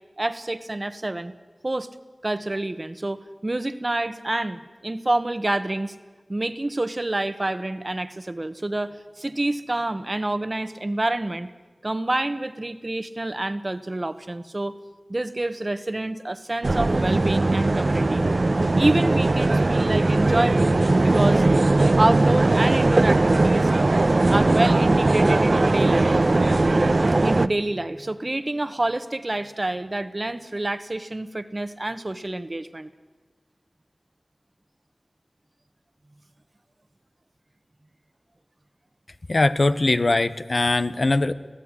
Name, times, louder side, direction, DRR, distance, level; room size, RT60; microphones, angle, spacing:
voice 1, 0.2-1.3 1.6-1.9 2.2-5.9 6.3-11.5 11.8-14.7 15.1-18.3 18.7-20.8 21.0-23.7 24.3-26.2 27.2-32.9, right 2 dB, 40° right, 12 dB, 1.2 m, -27 dB
sound 1, 16.6-27.5, right 2 dB, 60° right, 0.8 m, -19 dB
voice 2, 39.3-41.3, left 2 dB, 60° left, 12 dB, 1.0 m, -21 dB
25.5 x 16.5 x 9.8 m, 1.3 s
wide cardioid pair, 55°, 0 cm